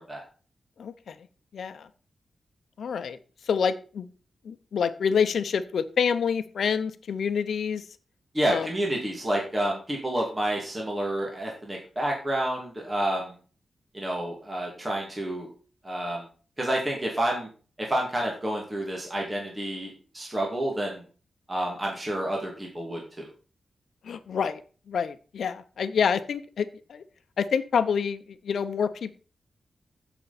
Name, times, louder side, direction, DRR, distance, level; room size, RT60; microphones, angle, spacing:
voice 1, 0.8-1.2 1.5-1.9 2.8-3.2 3.5-4.1 4.4-7.8 8.5-8.7 24.0-24.6 24.9-27.0 27.4-29.2, left 6 dB, 80° left, 12 dB, 0.9 m, -27 dB
voice 2, 8.3-13.3 13.9-15.5 15.8-16.2 16.6-17.5 17.8-21.0 21.5-23.3, right 1 dB, 20° right, -1 dB, 2.4 m, -29 dB
15.0 x 6.2 x 4.3 m, 0.38 s
wide cardioid pair, 145°, 0 cm